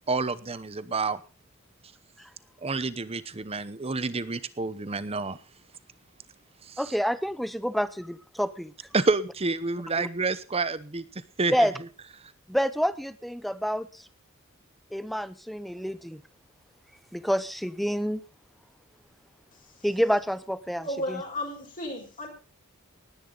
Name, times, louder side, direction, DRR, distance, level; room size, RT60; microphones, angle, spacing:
voice 1, 0.1-1.2 2.6-5.4 6.6-6.9 8.9-11.7 12.2-12.3, right 3 dB, 30° right, 15 dB, 0.9 m, -29 dB
voice 2, 6.8-8.7 10.0-10.1 11.5-11.7 12.5-13.9 14.9-16.2 17.1-18.2 19.8-21.2, equal, ahead, 15 dB, 0.7 m, -28 dB
voice 3, 20.8-22.3, left 1 dB, 40° left, 1 dB, 4.4 m, -33 dB
19.0 x 10.0 x 3.9 m, 0.34 s
head